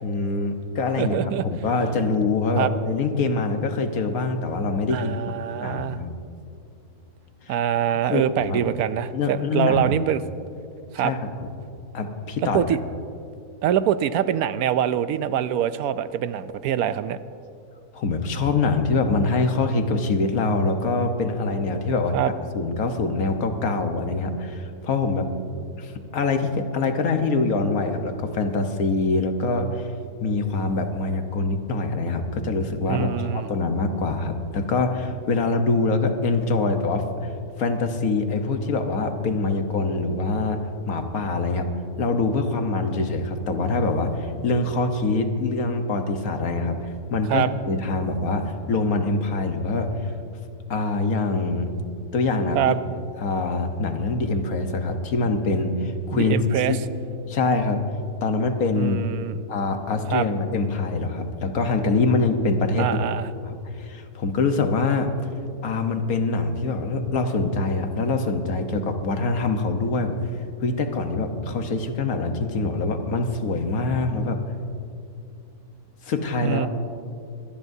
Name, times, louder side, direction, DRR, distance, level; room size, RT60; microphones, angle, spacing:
voice 1, 0.0-1.2 1.5-6.1 7.5-7.6 8.1-8.6 9.1-9.9 11.0-11.3 11.9-12.6 17.9-25.3 25.8-29.9 30.2-37.3 37.6-40.6 40.9-41.7 42.0-50.1 50.7-51.7 52.1-52.8 53.2-56.4 56.7-56.8 57.3-57.8 58.2-59.0 59.5-63.0 63.4-65.1 65.6-70.2 70.6-74.4 76.0-76.7, left 3 dB, 65° left, 6 dB, 1.5 m, -24 dB
voice 2, 1.0-1.5 2.6-2.7 4.9-6.0 7.5-10.2 10.9-11.1 12.5-12.8 13.6-17.2 22.1-22.3 32.9-33.5 47.3-47.5 52.5-52.8 56.1-56.8 58.8-59.4 60.1-60.2 62.8-63.3 76.4-76.7, right 10 dB, 75° right, 13 dB, 1.0 m, -24 dB
23.5 x 18.5 x 2.7 m, 2.5 s
omnidirectional pair, 1.6 m